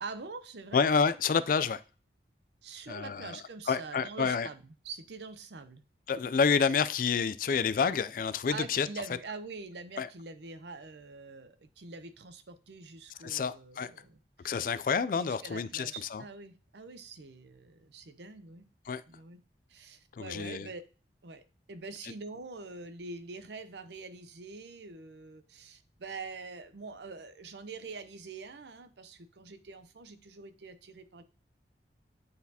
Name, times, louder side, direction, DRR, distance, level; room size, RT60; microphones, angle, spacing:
voice 1, 0.0-0.9 2.6-5.8 8.5-14.5 15.2-18.6 19.1-19.4 19.7-20.8 21.2-21.4 21.7-31.2, right 4 dB, 75° right, 0.7 m, -45 dB
voice 2, 0.7-1.8 2.9-3.4 3.7-4.5 6.1-8.9 10.0-10.1 13.2-13.9 14.4-16.2 18.9-19.0 20.1-20.7 22.0-22.1, left 6 dB, 50° left, 0.3 m, -29 dB
9.4 x 4.1 x 2.8 m
head